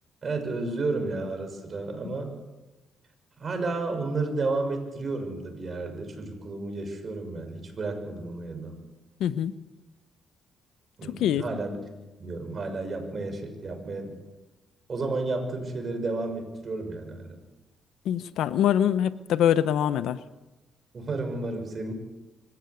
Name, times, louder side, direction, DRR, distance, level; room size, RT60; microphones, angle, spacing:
voice 1, 0.2-2.4 3.4-8.8 11.0-11.8 12.2-14.2 14.9-17.4 20.9-21.9, right 3 dB, 40° right, 6 dB, 6.1 m, -32 dB
voice 2, 9.2-9.5 11.2-11.4 18.1-20.2, left 10 dB, 80° left, 14 dB, 0.9 m, -24 dB
25.0 x 15.0 x 8.1 m, 1.1 s
cardioid pair, 90°, 0 cm